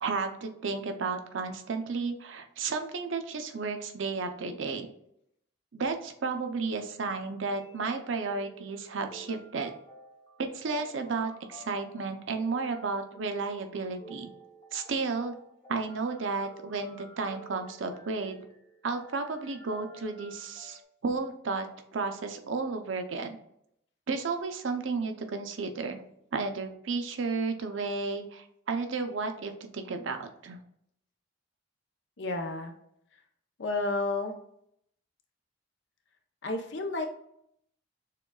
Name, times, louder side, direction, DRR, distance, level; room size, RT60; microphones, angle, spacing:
voice 1, 0.0-4.9 5.7-9.8 10.4-14.3 14.7-15.3 15.7-18.4 18.8-21.7 21.9-23.4 24.1-26.0 26.3-30.6, right 4 dB, 70° right, 6 dB, 0.6 m, -33 dB
sound 1, 7.5-20.8, right 1 dB, 25° left, 0.7 m, -52 dB
voice 2, 32.2-32.7 33.6-34.3 36.4-37.1, left 2 dB, 65° left, 4 dB, 0.7 m, -31 dB
6.5 x 2.3 x 2.3 m, 0.73 s
head